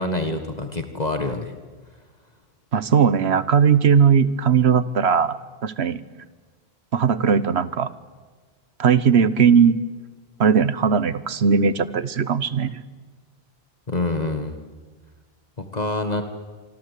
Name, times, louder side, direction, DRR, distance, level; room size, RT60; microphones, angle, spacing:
voice 1, 0.0-1.5 13.9-14.6 15.6-16.2, left 2 dB, 40° left, 7 dB, 1.8 m, -26 dB
voice 2, 2.7-6.0 6.9-7.9 8.8-9.8 10.4-12.8, right 6 dB, 80° right, 15 dB, 1.3 m, -18 dB
25.5 x 25.0 x 8.4 m, 1.4 s
omnidirectional pair, 1.1 m